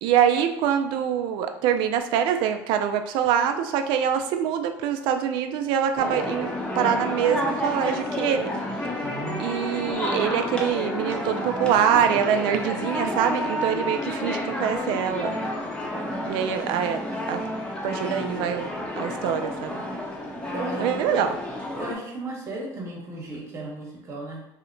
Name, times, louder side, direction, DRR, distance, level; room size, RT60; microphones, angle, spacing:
voice 1, 0.0-6.5 6.8-8.5 9.0-9.1 9.4-15.4 16.3-17.0 17.3-17.4 17.8-19.8 20.8-21.3, right 8 dB, 75° right, 7 dB, 0.4 m, -24 dB
sound 1, 6.0-21.9, left 1 dB, 10° left, 0.7 m, -30 dB
voice 2, 9.0-9.4 20.5-21.2 21.8-24.5, right 2 dB, 35° right, -1 dB, 1.0 m, -35 dB
2.8 x 2.1 x 3.8 m, 0.88 s
supercardioid pair, 110°, 8 cm